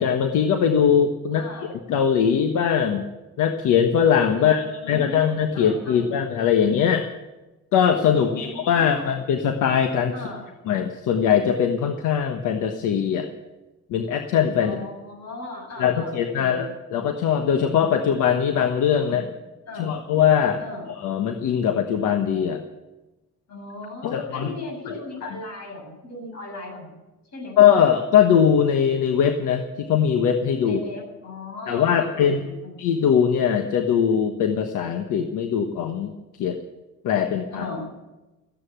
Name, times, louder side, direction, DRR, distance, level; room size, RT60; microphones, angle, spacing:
voice 1, 0.0-1.5 1.9-3.0 3.4-7.1 7.7-10.1 10.7-13.3 13.9-14.7 15.8-19.2 19.8-20.6 21.0-22.6 24.0-24.5 24.9-25.3 27.6-30.8 31.7-32.5 32.8-36.1 36.4-36.6 37.0-37.7, left 8 dB, 85° left, 6 dB, 1.3 m, -21 dB
voice 2, 1.4-1.7 4.4-6.1 8.1-9.1 10.1-10.5 14.6-17.0 19.0-19.3 19.7-20.0 20.6-20.9 23.5-27.0 27.3-27.6 30.6-32.8 37.5-37.9, left 2 dB, 60° left, 2 dB, 7.6 m, -37 dB
15.0 x 10.0 x 9.4 m, 1.1 s
cardioid pair, 90°, 30 cm